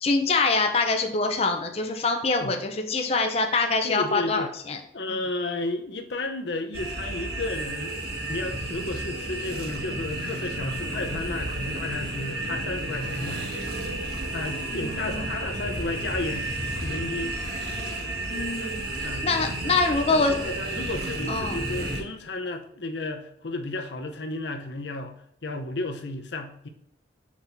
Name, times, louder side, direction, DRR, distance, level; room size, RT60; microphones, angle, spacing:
voice 1, 0.0-4.8 5.1-5.2 14.7-15.3 18.3-20.3 21.3-21.6, left 3 dB, 35° left, 0.7 m, -25 dB
voice 2, 3.8-4.5 4.9-7.9 8.3-13.4 14.3-16.5 16.8-17.3 19.0-19.3 20.1-26.7, left 2 dB, 85° left, 0.9 m, -33 dB
sound 1, 6.7-22.0, right 1 dB, 60° right, 1.7 m, -32 dB
6.1 x 6.0 x 2.7 m
head